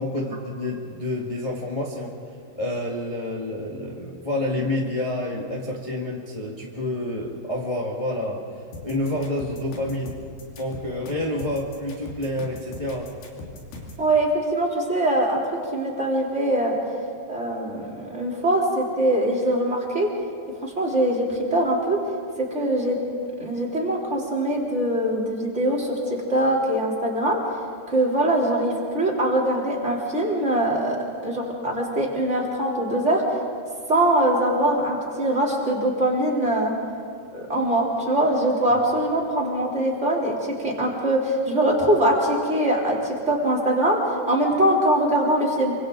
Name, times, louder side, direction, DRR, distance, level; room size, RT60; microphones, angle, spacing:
voice 1, 0.0-2.2 2.5-8.4 8.8-10.2 10.6-13.1, left 1 dB, 25° left, -3 dB, 0.8 m, -28 dB
sound 1, 8.7-14.0, left 2 dB, 85° left, 4.2 m, -39 dB
voice 2, 14.0-16.7 17.3-20.1 20.6-22.0 22.5-23.0 23.4-27.4 27.9-33.4 33.9-36.7 37.3-45.7, right 1 dB, 20° right, -3 dB, 3.2 m, -22 dB
27.0 x 25.0 x 3.9 m, 2.1 s
omnidirectional pair, 4.0 m